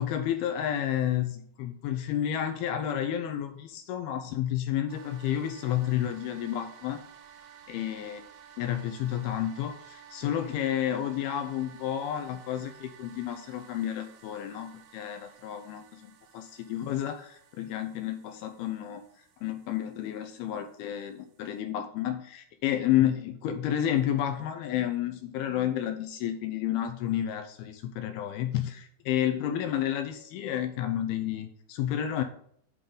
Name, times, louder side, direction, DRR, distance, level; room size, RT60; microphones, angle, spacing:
voice 1, 0.0-7.0 7.7-8.2 8.6-32.2, left 11 dB, 85° left, 7 dB, 2.3 m, -31 dB
sound 1, 4.9-21.6, right 8 dB, 80° right, 2.0 m, -54 dB
9.4 x 3.8 x 6.8 m, 0.64 s
omnidirectional pair, 4.9 m